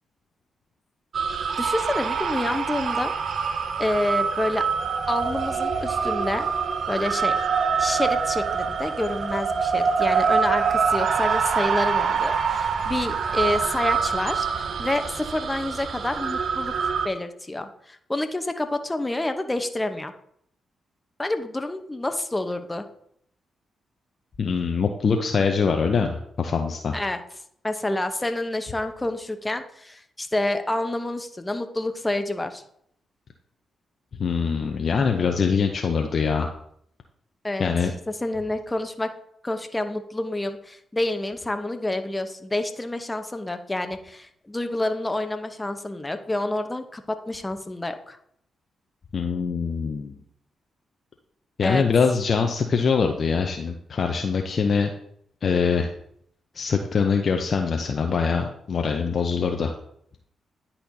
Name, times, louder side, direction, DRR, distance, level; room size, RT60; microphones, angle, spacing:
sound 1, 1.1-17.1, right 6 dB, 60° right, 0.5 m, -25 dB
voice 1, 1.6-3.1 3.8-4.6 5.1-6.5 6.9-7.4 7.8-20.1 21.2-22.9 26.9-27.2 27.6-32.6 37.4-37.7 38.1-39.1 39.4-48.2 51.6-51.8, left 2 dB, 20° left, 8 dB, 0.8 m, -28 dB
voice 2, 24.4-27.0 34.2-36.5 37.6-37.9 49.1-50.2 51.6-54.9 55.4-55.9 56.5-59.7, left 5 dB, 55° left, 4 dB, 0.6 m, -23 dB
10.0 x 4.3 x 2.7 m, 0.69 s
hypercardioid pair, 40°, 0 cm